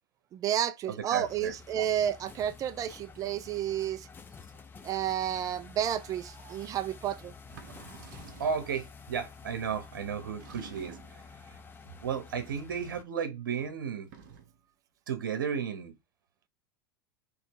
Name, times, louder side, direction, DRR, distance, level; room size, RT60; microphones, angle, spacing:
voice 1, 0.3-4.1 4.8-7.3, right 10 dB, 30° right, 0.5 m, -31 dB
voice 2, 0.9-1.5 8.4-11.6 12.0-14.1 15.1-15.9, right 7 dB, 85° right, 1.1 m, -34 dB
sound 1, 1.2-13.0, left 5 dB, 20° left, 0.8 m, -50 dB
sound 2, 7.4-8.7 10.4-11.3 14.0-14.6, right 7 dB, 65° right, 1.2 m, -50 dB
4.3 x 3.2 x 3.0 m
hypercardioid pair, 105°, 11 cm